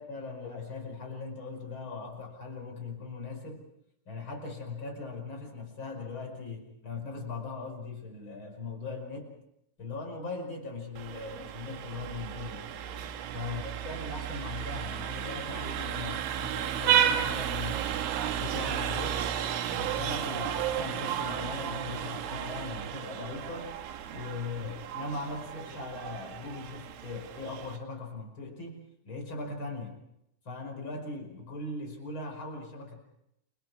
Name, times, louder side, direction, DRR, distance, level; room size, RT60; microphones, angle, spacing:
voice 1, 0.0-3.7 4.1-9.4 9.8-12.7 13.3-18.1 18.4-19.3 19.7-23.7 24.1-30.0 30.5-33.0, left 3 dB, 25° left, 3 dB, 5.4 m, -39 dB
Vehicle horn car horn honking, 11.0-27.8, right 9 dB, 75° right, 3.8 m, -33 dB
29.0 x 27.0 x 4.8 m, 0.80 s
omnidirectional pair, 5.5 m